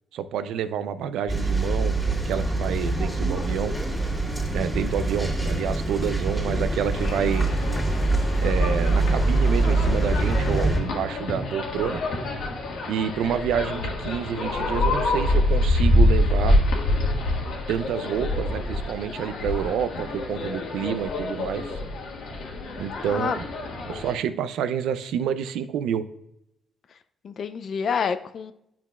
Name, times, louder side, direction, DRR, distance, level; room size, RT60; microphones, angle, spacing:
voice 1, 0.1-2.0 2.2-3.8 4.5-7.5 8.4-12.0 12.9-16.6 17.7-21.8 22.8-23.5 23.9-26.1, right 8 dB, 85° right, 12 dB, 0.4 m, -28 dB
sound 1, 1.3-10.8, right 2 dB, ahead, 2.0 m, -24 dB
sound 2, 6.9-24.1, left 1 dB, 85° left, 1.5 m, -26 dB
voice 2, 23.0-23.4 27.2-28.5, left 6 dB, 55° left, 11 dB, 0.5 m, -28 dB
10.5 x 5.8 x 2.3 m, 0.79 s
cardioid pair, 90°, 0 cm